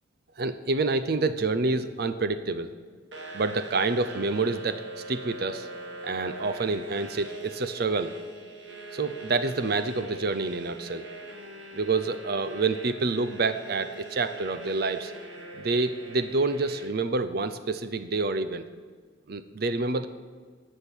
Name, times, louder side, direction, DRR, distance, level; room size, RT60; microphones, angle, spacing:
voice 1, 0.4-2.7 3.3-5.7 6.0-8.1 8.9-11.1 11.7-15.1 15.6-18.7 19.3-20.1, right 3 dB, 55° right, 11 dB, 0.6 m, -28 dB
sound 1, 3.1-16.8, right 2 dB, 75° right, 2.0 m, -42 dB
14.5 x 6.4 x 9.8 m, 1.5 s
head